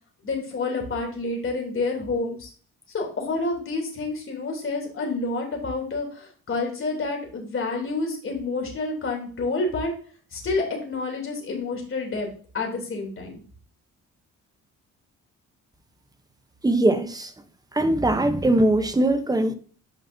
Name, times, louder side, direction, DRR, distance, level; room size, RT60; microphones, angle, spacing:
voice 1, 0.2-2.5 2.9-9.9 10.3-12.3 12.5-13.4, left 3 dB, 45° left, 3.2 m, -28 dB
voice 2, 16.6-17.3 17.7-19.5, right 1 dB, 10° right, 0.9 m, -21 dB
9.0 x 5.5 x 2.7 m
cardioid pair, 90°, 30 cm